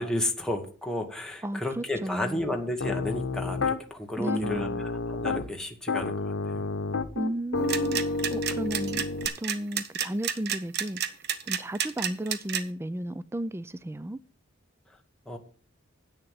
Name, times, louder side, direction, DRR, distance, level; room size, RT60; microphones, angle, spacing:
voice 1, 0.0-6.7 15.3-15.4, left 1 dB, 5° left, 1.3 m, -32 dB
voice 2, 1.4-2.6 4.2-4.9 7.1-8.0 8.3-9.0 9.4-11.0 11.4-14.2, right 1 dB, 15° right, 0.4 m, -33 dB
Piano, 2.8-3.8 4.3-5.5 5.9-9.3, left 3 dB, 90° left, 0.8 m, -30 dB
sound 1, 7.6-12.6, right 9 dB, 60° right, 1.0 m, -29 dB
8.9 x 6.7 x 7.1 m
head